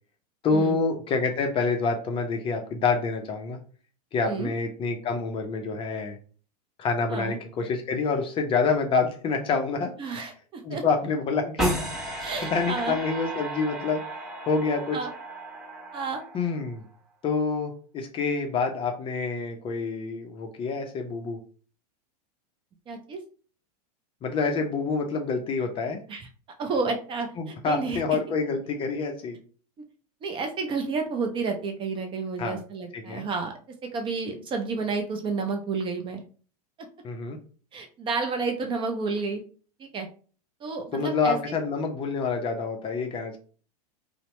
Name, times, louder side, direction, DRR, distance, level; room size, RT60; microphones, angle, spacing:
voice 1, 0.4-3.6 4.1-6.2 6.8-9.9 10.6-11.8 12.0-14.0 14.5-15.0 16.3-16.8 17.2-21.4 24.2-26.0 27.4-29.4 32.4-32.6 32.9-33.2 37.0-37.4 40.9-43.4, left 4 dB, 25° left, 4 dB, 0.5 m, -27 dB
voice 2, 10.0-10.8 12.2-13.0 14.9-15.1 15.9-16.2 22.9-23.2 26.1-28.0 30.2-36.2 37.7-39.4 39.8-40.1 40.6-41.4, right 4 dB, 25° right, 4 dB, 0.4 m, -31 dB
sound 1, 11.6-16.8, right 1 dB, ahead, 1.2 m, -34 dB
2.8 x 2.1 x 3.0 m, 0.40 s
hypercardioid pair, 100°, 20 cm